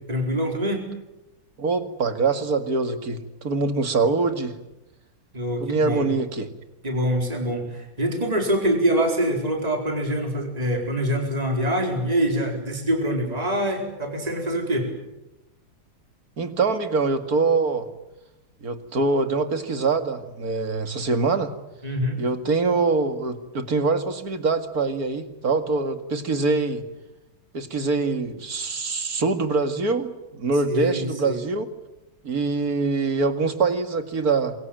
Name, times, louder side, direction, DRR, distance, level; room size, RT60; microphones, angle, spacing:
voice 1, 0.1-0.9 5.3-6.1 6.8-14.9 21.8-22.2 30.6-31.4, equal, 15° right, 2 dB, 4.7 m, -25 dB
voice 2, 1.6-4.5 5.6-6.5 16.4-17.9 18.6-21.5 22.2-26.8 27.5-31.7 32.2-34.5, right 4 dB, 45° right, 9 dB, 2.4 m, -24 dB
27.0 x 23.0 x 9.1 m, 0.95 s
omnidirectional pair, 2.3 m